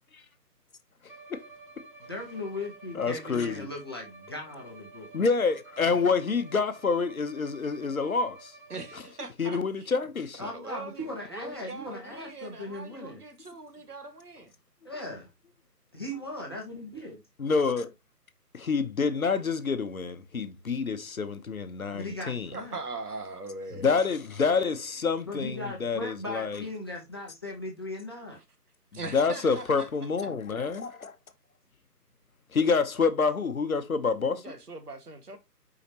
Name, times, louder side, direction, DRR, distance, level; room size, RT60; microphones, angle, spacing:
Bowed string instrument, 1.1-9.3, right 3 dB, 30° right, 1.1 m, -51 dB
voice 1, 2.1-5.1 5.9-6.0 10.4-13.2 14.8-15.3 15.9-17.2 21.9-22.8 25.3-28.4, left 1 dB, 15° left, 1.0 m, -38 dB
voice 2, 3.0-3.7 5.1-8.5 9.4-10.5 17.4-17.9 18.5-22.5 23.8-26.6 29.1-31.1 32.5-34.4, left 5 dB, 60° left, 1.0 m, -27 dB
voice 3, 8.7-9.9 10.4-14.5 22.5-24.0 28.9-29.9 30.2-30.3 34.4-35.4, right 3 dB, 65° right, 1.9 m, -41 dB
7.0 x 5.0 x 2.8 m
figure-of-eight pair, 165°, 48 cm